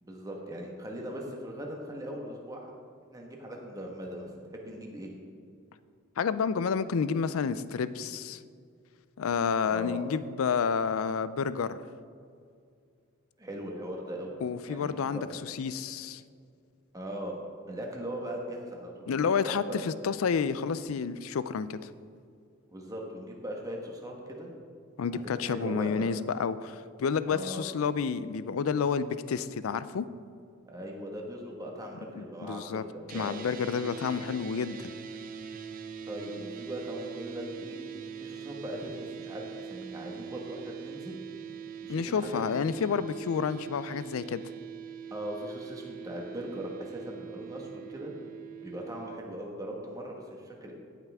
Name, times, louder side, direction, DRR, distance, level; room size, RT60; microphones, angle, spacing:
voice 1, 0.0-2.7 3.1-4.3 4.5-5.1 9.6-10.1 13.4-14.4 14.7-15.3 16.9-17.4 17.7-19.8 22.7-24.5 25.1-26.1 27.3-27.6 30.7-33.4 36.0-37.8 38.2-41.2 41.8-42.6 45.1-48.1 48.6-50.7, equal, 15° right, 0 dB, 1.3 m, -39 dB
voice 2, 6.2-8.4 9.2-11.8 14.4-16.2 19.1-21.9 25.0-30.1 32.2-32.8 33.1-34.9 41.9-44.4, left 6 dB, 85° left, 15 dB, 0.4 m, -30 dB
sound 1, 33.1-49.2, right 7 dB, 40° right, 0.5 m, -43 dB
17.0 x 5.8 x 3.5 m, 2.3 s
head